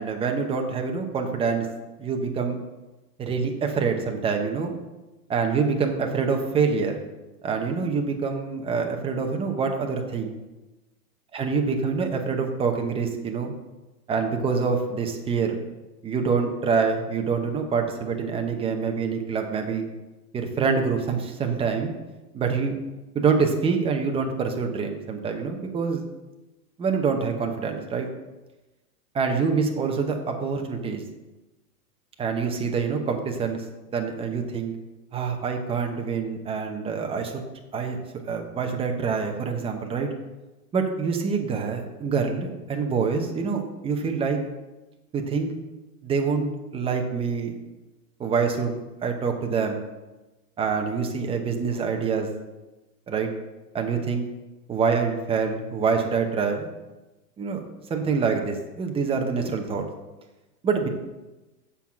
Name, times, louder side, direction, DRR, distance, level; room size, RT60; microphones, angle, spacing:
voice 1, 0.0-1.7 2.0-2.6 3.2-4.7 5.3-7.0 7.4-10.3 11.3-13.5 14.1-15.6 16.0-19.8 20.3-21.9 22.3-22.7 23.1-26.0 26.8-28.1 29.1-31.0 32.2-33.6 33.9-34.7 35.1-37.4 37.7-38.0 38.3-40.1 40.7-44.4 45.1-45.5 46.0-47.6 48.2-49.8 50.6-52.3 53.1-53.3 53.7-54.3 54.7-56.7 57.4-57.6 57.9-59.9 60.6-60.9, right 5 dB, 10° right, 4 dB, 0.7 m, -26 dB
7.1 x 5.6 x 5.9 m, 1.1 s
hypercardioid pair, 135°, 48 cm